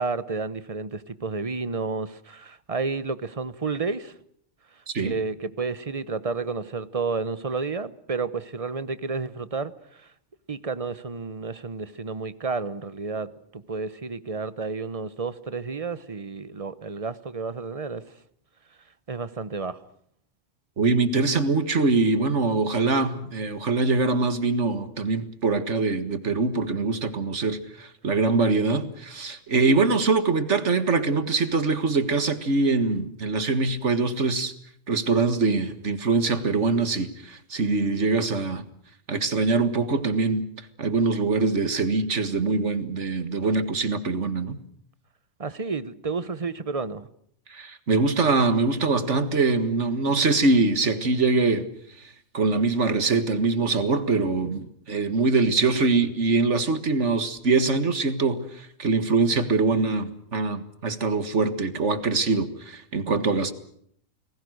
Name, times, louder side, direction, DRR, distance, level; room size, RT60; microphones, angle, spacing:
voice 1, 0.0-4.1 5.0-9.7 10.5-18.0 19.1-19.8 45.4-47.1, right 4 dB, 30° right, 1.0 m, -31 dB
voice 2, 20.8-34.5 34.9-38.7 39.1-40.5 40.8-44.6 47.5-51.7 52.0-63.5, right 3 dB, 60° right, 2.1 m, -23 dB
29.5 x 20.5 x 6.5 m
omnidirectional pair, 1.4 m